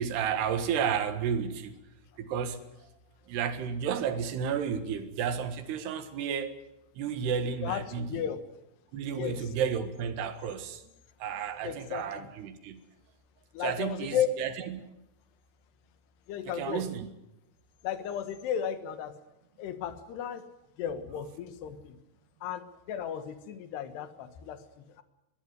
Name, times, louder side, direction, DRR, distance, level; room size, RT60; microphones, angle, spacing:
voice 1, 0.0-1.8 2.2-2.6 3.3-6.6 7.0-8.3 8.9-10.8 11.2-12.8 13.6-14.8 16.5-17.1, right 7 dB, 85° right, 3.7 m, -32 dB
voice 2, 7.6-8.4 9.1-9.4 11.6-12.0 13.5-14.3 16.3-16.8 17.8-19.2 19.6-20.5 20.8-22.0 22.4-25.0, left 9 dB, 85° left, 3.5 m, -34 dB
22.5 x 14.5 x 9.6 m
omnidirectional pair, 4.6 m